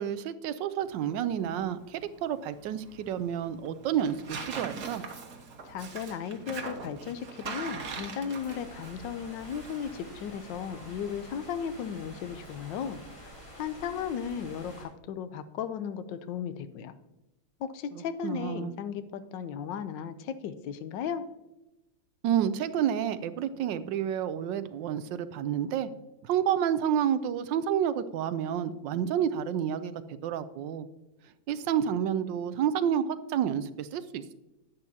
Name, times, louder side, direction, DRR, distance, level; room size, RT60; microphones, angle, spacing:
voice 1, 0.0-5.0 18.2-18.7 22.2-25.9 26.2-29.9 30.2-30.9 31.5-33.0 33.3-34.3, right 9 dB, 80° right, 13 dB, 1.3 m, -29 dB
Tearing, 0.8-13.0, right 5 dB, 60° right, 1.6 m, -43 dB
voice 2, 5.6-13.0 13.6-17.0 17.6-21.3, left 7 dB, 80° left, 12 dB, 1.3 m, -35 dB
sound 1, 8.3-14.8, equal, 40° left, 3.9 m, -48 dB
10.5 x 9.4 x 2.8 m, 0.98 s
omnidirectional pair, 2.0 m